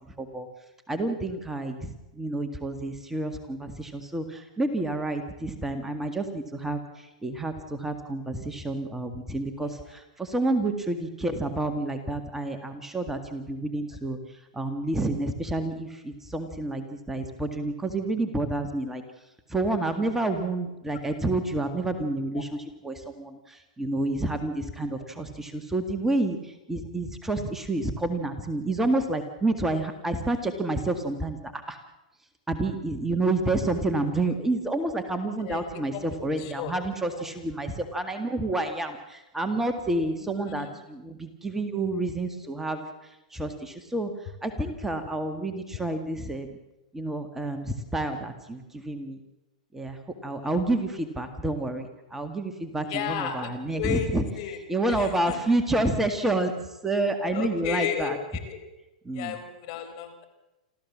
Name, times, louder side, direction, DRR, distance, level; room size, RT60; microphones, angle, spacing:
voice 1, 0.1-0.5 0.9-31.8 32.5-46.6 46.9-49.2 49.7-54.2 54.7-58.2 59.0-59.4, right 2 dB, 10° right, 6 dB, 1.9 m, -29 dB
voice 2, 35.4-36.7 37.2-37.3 40.0-40.7 50.4-50.5 52.9-54.1 54.4-54.6 55.0-55.4 57.3-58.6 59.1-60.2, left 9 dB, 50° left, 7 dB, 4.7 m, -34 dB
28.0 x 14.0 x 7.4 m, 0.98 s
hypercardioid pair, 115°, 4 cm